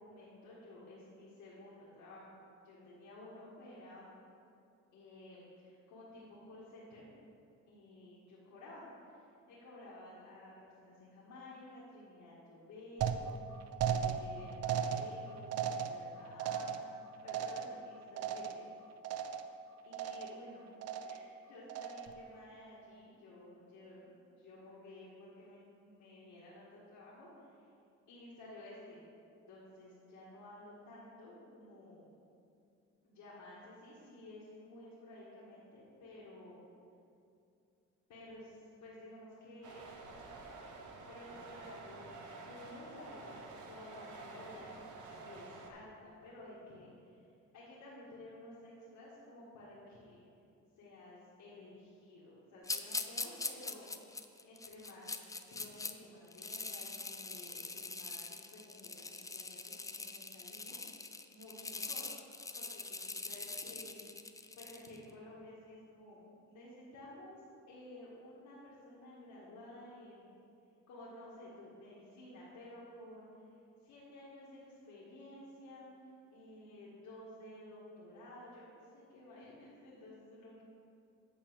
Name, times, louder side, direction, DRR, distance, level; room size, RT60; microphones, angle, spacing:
voice 1, 0.0-2.4 2.6-4.2 4.9-7.0 7.7-15.5 15.8-16.9 17.2-18.7 19.8-20.6 21.0-27.7 28.1-29.0 29.5-32.1 33.0-36.6 38.1-39.8 41.1-43.3 43.6-44.8 45.0-47.2 47.5-50.2 50.8-53.9 54.4-55.1 55.5-61.0 61.3-62.1 62.6-66.2 66.5-67.4 67.7-70.3 70.9-73.3 73.8-75.9 76.3-80.6, left 1 dB, 75° left, -8 dB, 1.7 m, -53 dB
sound 1, 13.0-18.8 19.0-19.6 19.9-20.5 20.8-21.3 21.7-22.2, right 7 dB, 55° right, 0.5 m, -37 dB
sound 2, 39.6-45.7, right 3 dB, 80° right, 1.0 m, -50 dB
sound 3, 52.6-55.9 56.3-65.0, left 3 dB, 10° left, 0.4 m, -43 dB
8.5 x 4.4 x 6.1 m, 2.5 s
cardioid pair, 90°, 30 cm